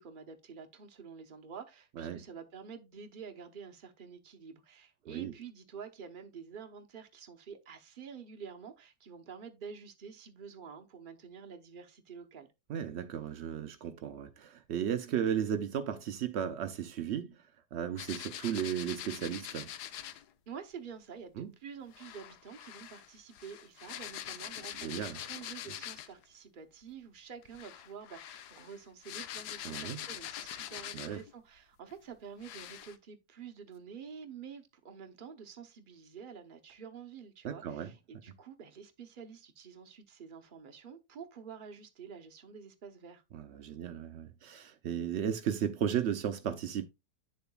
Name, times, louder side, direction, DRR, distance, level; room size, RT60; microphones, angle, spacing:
voice 1, 0.0-12.5 20.5-43.2, right 6 dB, 40° right, 0.7 m, -48 dB
voice 2, 12.7-17.4 17.7-19.7 21.4-21.5 24.8-25.2 29.6-30.0 30.9-31.2 37.4-37.9 43.3-46.9, right 9 dB, 80° right, 0.6 m, -35 dB
sound 1, 18.0-20.2 21.9-26.2 27.4-31.3 31.9-32.0 32.4-33.0, left 11 dB, 75° left, 1.2 m, -44 dB
8.9 x 6.8 x 2.3 m
omnidirectional pair, 1.8 m